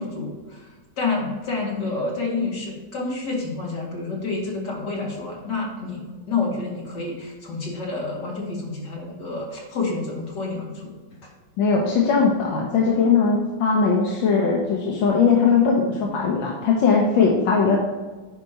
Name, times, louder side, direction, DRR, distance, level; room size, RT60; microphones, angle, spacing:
voice 1, 0.0-10.9, left 3 dB, 60° left, -3 dB, 2.7 m, -29 dB
voice 2, 11.6-17.8, left 5 dB, 80° left, -2 dB, 1.7 m, -19 dB
10.5 x 5.3 x 2.9 m, 1.3 s
omnidirectional pair, 2.1 m